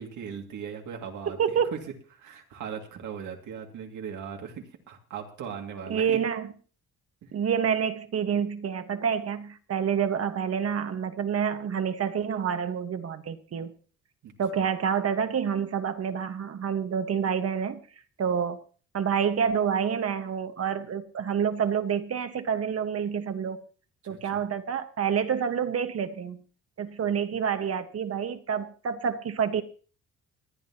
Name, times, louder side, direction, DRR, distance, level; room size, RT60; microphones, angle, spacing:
voice 1, 0.0-1.4 1.7-1.8 2.2-6.2 7.2-7.3 14.2-14.3 24.0-24.4, right 7 dB, 80° right, 2 dB, 2.4 m, -38 dB
voice 2, 1.3-1.7 5.9-6.5 7.3-13.7 14.4-17.8 18.2-18.6 18.9-23.6 24.1-26.4 26.8-29.6, right 7 dB, 55° right, 9 dB, 1.5 m, -28 dB
27.0 x 9.3 x 2.9 m, 0.40 s
cardioid pair, 90°, 30 cm